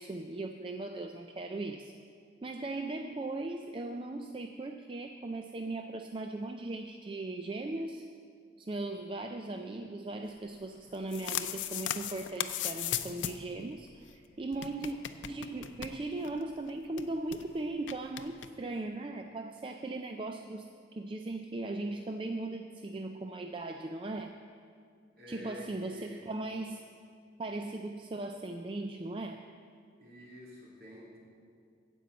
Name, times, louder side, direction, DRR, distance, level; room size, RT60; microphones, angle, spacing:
voice 1, 0.0-1.9 2.4-8.1 8.6-15.0 15.3-24.3 25.3-26.8 27.4-29.5, right 2 dB, 30° right, 5 dB, 0.4 m, -38 dB
sound 1, 10.9-13.5 13.8-13.9 14.1-14.2 14.5-16.4 16.7-16.8 17.0-17.4 17.9-18.5, left 11 dB, 90° left, 0.6 m, -37 dB
voice 2, 25.1-26.2 30.0-31.2, left 1 dB, 55° right, -4 dB, 3.1 m, -49 dB
15.0 x 5.4 x 8.2 m, 2.3 s
head